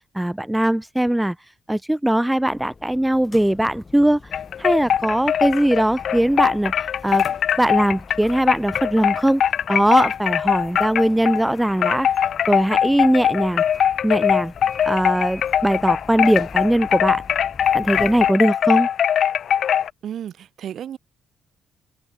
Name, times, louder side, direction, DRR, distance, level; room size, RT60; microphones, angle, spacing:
voice 1, 0.2-1.3 1.7-4.2 4.6-7.2 7.6-9.4 9.7-12.1 12.5-13.6 14.0-14.5 14.8-17.2 17.7-18.9, right 1 dB, 5° right, 0.4 m, -20 dB
sound 1, 2.4-18.3, left 4 dB, 30° left, 5.1 m, -43 dB
sound 2, 4.3-11.5 11.8-19.9, left 9 dB, 65° left, 0.5 m, -21 dB
voice 2, 20.0-21.0, right 9 dB, 65° right, 1.8 m, -33 dB
cardioid pair, 90°, 0 cm